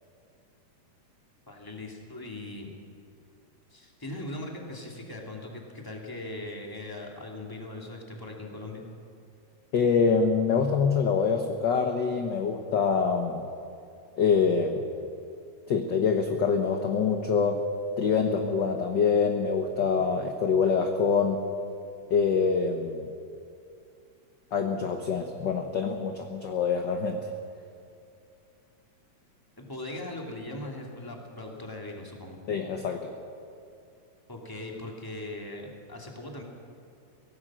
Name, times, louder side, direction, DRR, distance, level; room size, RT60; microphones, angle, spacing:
voice 1, 1.5-2.7 3.7-8.8 29.6-32.4 34.3-36.4, left 1 dB, 5° left, 0 dB, 2.5 m, -39 dB
voice 2, 9.7-13.4 14.2-14.8 15.7-17.6 18.0-21.4 22.1-23.1 24.5-27.2 32.5-33.1, left 5 dB, 55° left, 4 dB, 1.3 m, -25 dB
24.0 x 17.5 x 6.3 m, 2.5 s
omnidirectional pair, 3.4 m